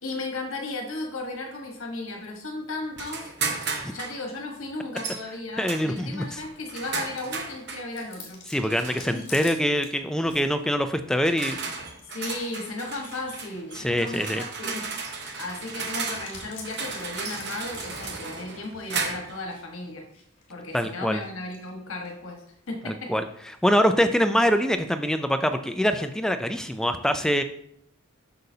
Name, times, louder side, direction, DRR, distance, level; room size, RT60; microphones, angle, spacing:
voice 1, 0.0-3.3 3.9-8.4 9.0-9.2 12.1-14.9 15.2-20.1 20.5-23.1, left 2 dB, 70° left, 2 dB, 1.4 m, -35 dB
sound 1, 3.0-4.2 5.0-5.2 5.7-7.9 8.7-9.2 10.3-10.5 11.1-19.4, right 4 dB, 50° right, 1.0 m, -34 dB
voice 2, 5.6-6.4 8.5-11.6 13.7-14.4 15.3-15.4 20.7-21.2 22.9-23.3 23.6-27.4, equal, 5° left, 8 dB, 0.3 m, -24 dB
Chewing mastication, 7.2-24.8, left 4 dB, 35° left, 2.2 m, -50 dB
7.9 x 6.5 x 2.8 m, 0.71 s
head